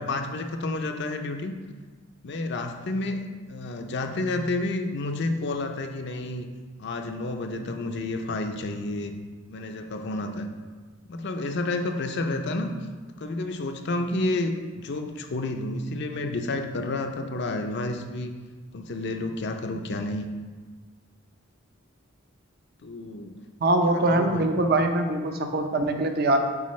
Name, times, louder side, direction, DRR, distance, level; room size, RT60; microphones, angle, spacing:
voice 1, 0.0-1.5 2.2-6.5 6.8-9.2 9.5-10.5 11.0-12.7 13.2-18.3 18.7-20.3 22.8-23.3 23.9-24.5, left 2 dB, 60° left, 5 dB, 0.5 m, -30 dB
voice 2, 23.6-26.4, right 2 dB, 50° right, 5 dB, 0.6 m, -23 dB
8.4 x 4.2 x 3.1 m, 1.4 s
head